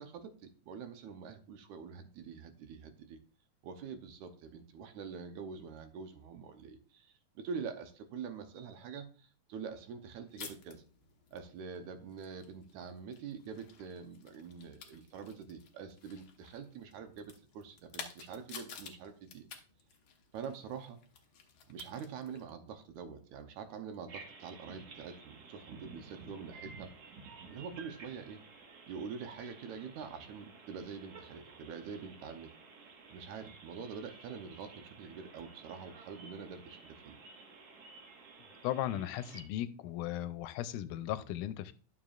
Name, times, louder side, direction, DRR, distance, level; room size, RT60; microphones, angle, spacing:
voice 1, 0.0-3.2 3.6-10.8 11.3-19.5 20.3-21.0 21.7-26.9 27.5-28.4 28.9-32.5 33.1-37.2, right 6 dB, 75° right, 7 dB, 2.1 m, -45 dB
sound 1, 10.3-22.5, left 6 dB, 65° left, 1.2 m, -53 dB
sound 2, 24.1-39.4, right 4 dB, 55° right, 2.3 m, -53 dB
voice 2, 38.6-41.7, left 12 dB, 85° left, 13 dB, 2.1 m, -36 dB
11.5 x 7.0 x 2.4 m, 0.39 s
omnidirectional pair, 3.6 m